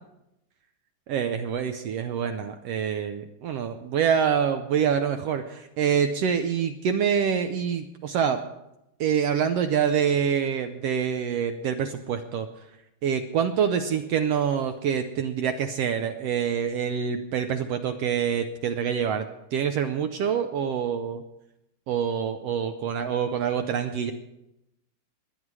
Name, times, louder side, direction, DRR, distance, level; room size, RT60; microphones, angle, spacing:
voice 1, 1.1-8.4 9.0-12.5 13.0-21.2 21.9-24.1, right 7 dB, 75° right, 7 dB, 1.5 m, -26 dB
21.0 x 9.3 x 4.8 m, 0.87 s
omnidirectional pair, 3.4 m